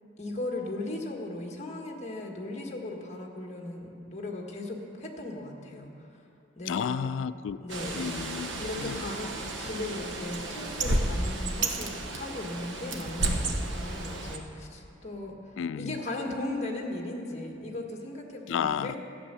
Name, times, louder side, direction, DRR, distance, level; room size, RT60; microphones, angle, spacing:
voice 1, 0.2-5.9 6.5-7.1 7.6-8.1 8.6-9.3 9.6-15.3 15.7-19.0, left 2 dB, 35° left, 0 dB, 1.5 m, -37 dB
voice 2, 6.7-7.6 8.0-9.0 15.6-16.0 18.5-18.9, left 7 dB, 85° left, 16 dB, 0.3 m, -32 dB
Bird, 7.7-14.4, right 2 dB, 75° right, 1.1 m, -32 dB
13.0 x 8.3 x 6.9 m, 2.8 s
head